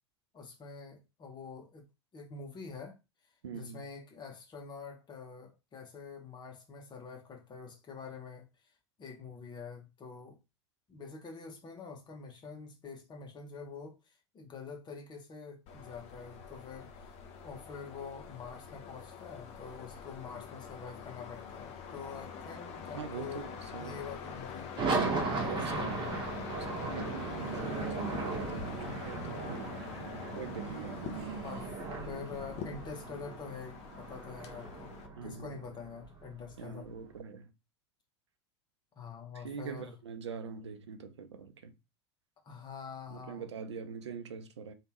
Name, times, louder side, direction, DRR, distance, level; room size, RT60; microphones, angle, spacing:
voice 1, 0.3-1.8 2.1-3.0 3.5-8.5 9.0-10.4 10.9-17.1 17.4-23.5 23.8-24.8 25.2-26.1 31.4-31.7 32.0-34.9 35.2-36.9 39.0-39.9 42.4-43.4, left 5 dB, 30° left, 1.3 m, -46 dB
voice 2, 3.4-3.8 22.9-24.0 25.3-26.0 26.5-29.8 30.3-31.4 35.2-35.6 36.6-37.5 39.3-41.7 43.1-44.7, right 6 dB, 80° right, 0.5 m, -43 dB
sound 1, 15.7-35.1, left 6 dB, 45° left, 0.7 m, -45 dB
sound 2, 24.8-37.0, right 3 dB, 35° right, 1.2 m, -37 dB
sound 3, 27.2-32.5, right 5 dB, 65° right, 0.8 m, -44 dB
3.3 x 2.8 x 3.0 m
figure-of-eight pair, 80°, 14 cm